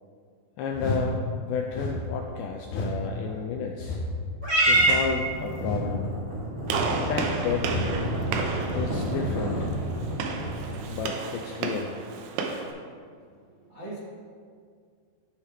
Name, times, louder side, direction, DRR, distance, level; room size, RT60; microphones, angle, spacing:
voice 1, 0.6-4.0 4.7-6.1 7.0-7.7 8.7-9.7 10.9-11.9, left 6 dB, 85° left, 2 dB, 1.8 m, -32 dB
sound 1, 0.7-1.1 1.7-2.0 2.7-3.0 3.8-4.1 4.7-5.0 5.6-5.9 6.7-7.0 7.6-7.9 8.7-9.0, left 1 dB, 70° left, 2.2 m, -31 dB
Purr / Meow, 4.4-10.9, right 2 dB, 30° right, 1.3 m, -28 dB
Gunshot gunfire, 6.7-12.7, right 4 dB, 90° right, 2.6 m, -33 dB
voice 2, 13.4-14.0, right 2 dB, 70° right, -9 dB, 0.8 m, -44 dB
12.5 x 4.8 x 3.4 m, 2.1 s
omnidirectional pair, 4.2 m